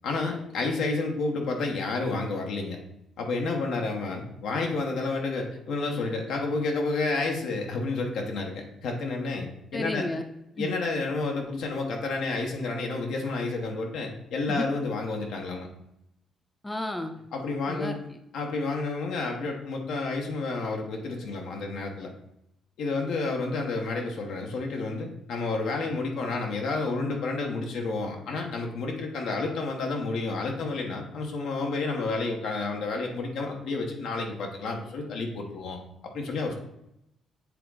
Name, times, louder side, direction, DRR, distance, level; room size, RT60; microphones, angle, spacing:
voice 1, 0.0-2.8 3.2-10.0 10.6-15.7 17.3-17.9 18.3-22.1 22.8-35.8 36.1-36.5, left 3 dB, 80° left, 1 dB, 1.4 m, -30 dB
voice 2, 9.7-10.2 10.6-10.7 14.5-14.7 16.6-17.1 17.7-18.2, left 1 dB, 10° left, 6 dB, 0.7 m, -32 dB
7.7 x 3.7 x 4.0 m, 0.82 s
cardioid pair, 90°, 0 cm